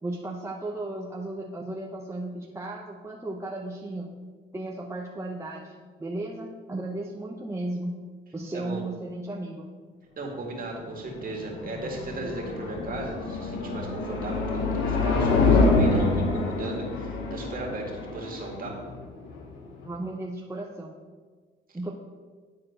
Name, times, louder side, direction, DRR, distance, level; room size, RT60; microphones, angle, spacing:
voice 1, 0.0-4.2 4.5-5.7 6.0-8.0 8.3-9.7 19.8-21.0 21.7-21.9, right 2 dB, 15° right, -1 dB, 0.7 m, -35 dB
voice 2, 10.2-18.7, right 2 dB, 45° right, 0 dB, 2.1 m, -36 dB
sound 1, 10.9-19.9, left 3 dB, 85° left, 1.1 m, -26 dB
9.9 x 4.4 x 4.9 m, 1.5 s
cardioid pair, 90°, 20 cm